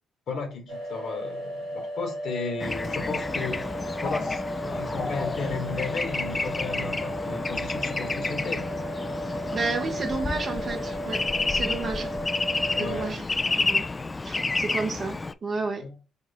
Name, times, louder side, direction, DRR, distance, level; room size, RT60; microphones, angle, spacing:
voice 1, 0.3-3.7 4.0-8.7 9.4-9.7 12.7-13.2 15.8-16.0, left 4 dB, 60° left, 1.3 m, -34 dB
sound 1, 0.7-13.1, equal, 80° right, 1.2 m, -35 dB
Bird / Traffic noise roadway noise, 2.6-15.3, left 3 dB, 25° left, 0.3 m, -30 dB
voice 2, 9.5-11.2 11.5-12.1 12.8-13.3 13.5-13.8 14.3-16.0, right 3 dB, 45° right, 1.0 m, -31 dB
4.2 x 2.4 x 4.2 m
hypercardioid pair, 45°, 0 cm